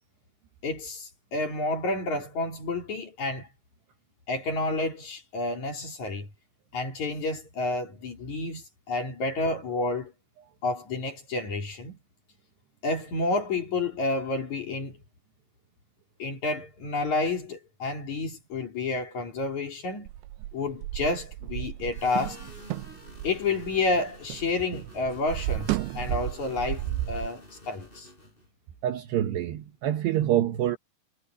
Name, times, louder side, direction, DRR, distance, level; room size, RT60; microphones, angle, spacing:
voice 1, 0.6-3.5 4.3-6.3 6.7-10.1 10.6-12.0 12.8-15.0 16.2-20.1 20.5-22.4 23.2-28.1, left 3 dB, 40° left, 4.4 m, -30 dB
sound 1, 20.1-24.5 24.7-27.3, right 15 dB, 90° right, 2.3 m, -33 dB
sound 2, 21.9-28.5, left 1 dB, 10° left, 6.3 m, -49 dB
voice 2, 28.8-30.8, right 12 dB, 70° right, 2.9 m, -26 dB
omnidirectional pair, 5.8 m